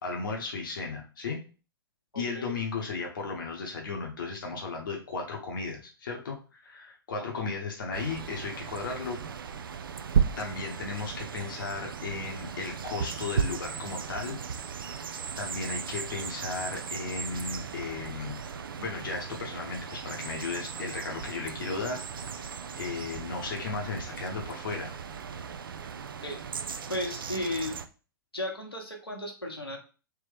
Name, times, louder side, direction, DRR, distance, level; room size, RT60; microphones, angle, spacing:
voice 1, 0.0-1.4 2.1-9.2 10.4-14.4 15.4-18.4 18.8-22.3 22.8-24.9, left 4 dB, 60° left, 1 dB, 0.9 m, -35 dB
voice 2, 2.1-2.5 7.1-7.5 26.2-26.4 26.9-27.7 28.3-29.8, left 1 dB, 85° left, 1 dB, 1.0 m, -35 dB
sound 1, 7.9-27.9, right 7 dB, 65° right, 0.4 m, -36 dB
3.4 x 3.0 x 3.4 m, 0.35 s
figure-of-eight pair, 105°, 13 cm